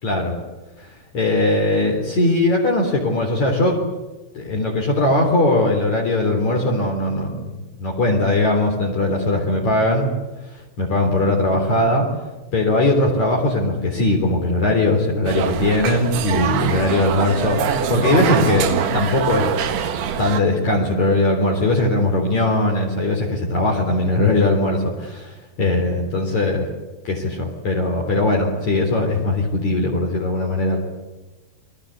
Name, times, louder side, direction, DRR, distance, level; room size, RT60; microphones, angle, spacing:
voice 1, 0.0-0.4 1.1-3.8 4.3-7.5 7.8-10.1 10.8-12.0 12.5-19.5 20.2-26.7 27.0-30.8, left 2 dB, 45° left, 0 dB, 4.6 m, -20 dB
sound 1, 15.3-20.4, right 7 dB, 70° right, 3.6 m, -23 dB
29.0 x 22.5 x 8.3 m, 1.1 s
omnidirectional pair, 4.9 m